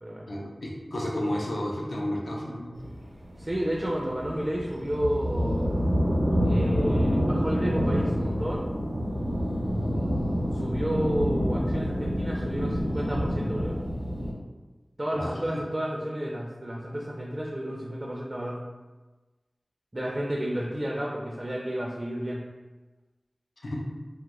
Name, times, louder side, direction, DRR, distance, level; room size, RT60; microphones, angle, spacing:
voice 1, 0.3-2.7 15.1-15.6 23.6-23.8, left 1 dB, 80° left, -3 dB, 0.5 m, -32 dB
sound 1, 2.8-14.3, equal, 85° right, 0.7 m, -27 dB
voice 2, 3.4-5.7 6.4-8.6 10.5-13.8 15.0-18.6 19.9-22.4, equal, 35° right, -3 dB, 0.4 m, -31 dB
2.3 x 2.2 x 2.9 m, 1.2 s
wide cardioid pair, 60°, 0 cm